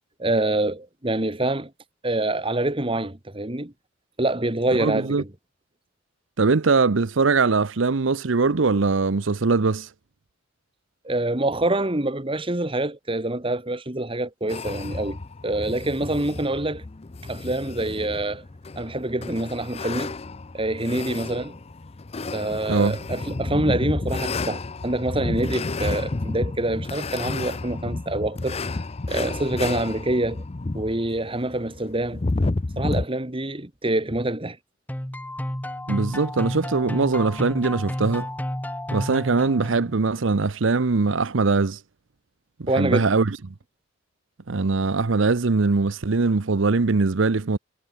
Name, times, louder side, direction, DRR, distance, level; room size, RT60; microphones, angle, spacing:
voice 1, 0.2-1.7 2.0-3.7 4.2-5.3 11.0-16.8 17.2-18.4 18.7-20.2 20.5-21.5 22.3-28.6 29.1-30.4 30.7-32.2 32.8-34.6 42.7-43.1, right 2 dB, 25° right, 2.0 m, -26 dB
voice 2, 4.8-5.2 6.4-9.9 22.7-23.0 35.9-38.3 38.9-41.8 42.6-43.4 44.5-47.6, right 4 dB, 75° right, 0.8 m, -21 dB
sound 1, 14.5-33.0, left 3 dB, 30° left, 0.6 m, -31 dB
sound 2, 34.9-40.1, left 1 dB, 10° left, 1.3 m, -31 dB
head